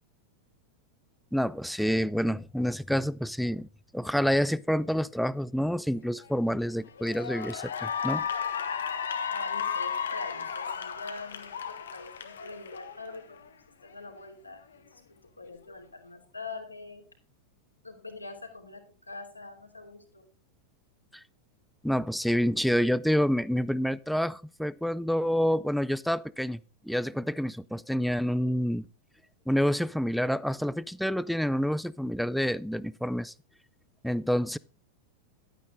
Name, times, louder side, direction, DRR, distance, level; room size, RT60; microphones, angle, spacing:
voice 1, 1.3-8.3 21.1-21.2 21.8-28.8 29.5-33.3 34.0-34.6, equal, ahead, 0.4 m, -28 dB
Cheering / Applause, 6.2-6.5 7.0-13.5, left 7 dB, 65° left, 1.2 m, -34 dB
voice 2, 9.3-13.4 13.8-15.0 15.4-17.0 17.8-20.2, left 3 dB, 85° left, 2.8 m, -43 dB
11.5 x 9.2 x 3.7 m
figure-of-eight pair, 90°, 0 cm